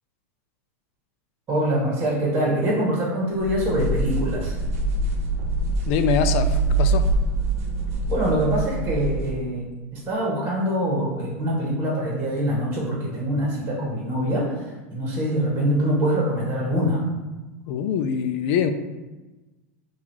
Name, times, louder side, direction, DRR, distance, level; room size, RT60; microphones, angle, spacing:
voice 1, 1.5-4.6 8.1-14.5 14.9-17.0, right 1 dB, 25° right, -4 dB, 1.2 m, -24 dB
sound 1, 3.4-9.4, right 2 dB, 80° right, 0.8 m, -24 dB
voice 2, 5.9-7.1 17.7-18.7, left 7 dB, 55° left, 10 dB, 0.4 m, -24 dB
3.8 x 2.4 x 4.6 m, 1.2 s
supercardioid pair, 135°, 8 cm